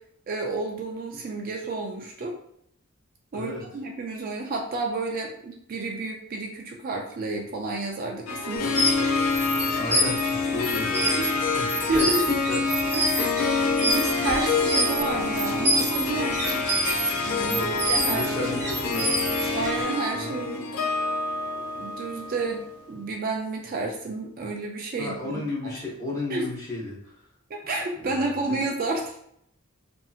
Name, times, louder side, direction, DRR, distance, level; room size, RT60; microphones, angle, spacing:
voice 1, 0.3-2.3 3.3-9.1 11.2-11.3 11.9-12.3 13.1-13.4 13.8-16.7 17.3-17.6 17.9-18.5 19.5-20.7 21.8-25.7 26.3-26.5 27.5-29.1, right 2 dB, 40° right, 1 dB, 0.3 m, -30 dB
voice 2, 3.3-3.6 9.7-11.2 11.6-12.9 17.4-19.4 20.1-20.4 25.0-27.0 28.0-28.6, left 2 dB, 15° left, -6 dB, 0.8 m, -33 dB
Harp, 8.3-22.8, left 4 dB, 75° left, 0.4 m, -27 dB
sound 1, 8.6-19.8, right 1 dB, 15° right, 1.0 m, -28 dB
2.7 x 2.6 x 2.3 m, 0.72 s
head